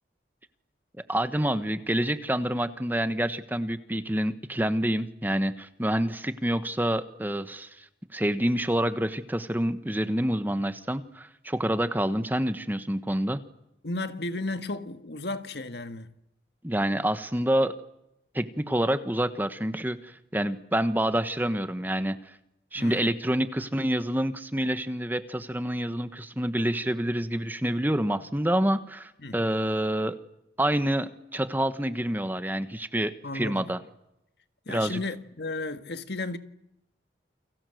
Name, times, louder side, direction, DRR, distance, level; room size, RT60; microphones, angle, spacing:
voice 1, 1.1-13.4 16.6-17.7 18.3-22.4 22.7-30.1 30.6-33.8 34.7-35.0, right 1 dB, 10° right, 1.3 m, -27 dB
voice 2, 13.8-16.1 22.7-23.1 29.2-29.4 33.2-33.7 34.6-36.4, left 2 dB, 65° left, 1.7 m, -34 dB
30.0 x 23.5 x 7.9 m
head